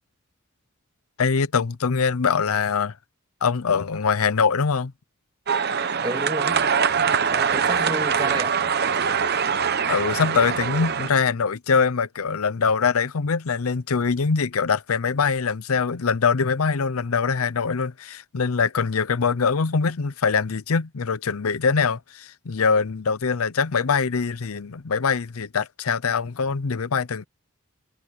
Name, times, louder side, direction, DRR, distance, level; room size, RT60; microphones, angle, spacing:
voice 1, 1.2-2.9 3.4-4.9 7.1-7.2 9.9-27.2, left 5 dB, 80° left, 0.7 m, -23 dB
sound 1, 5.5-11.1, right 6 dB, 50° right, 0.8 m, -23 dB
voice 2, 6.0-6.7 7.2-8.6, right 1 dB, 20° right, 2.5 m, -31 dB
head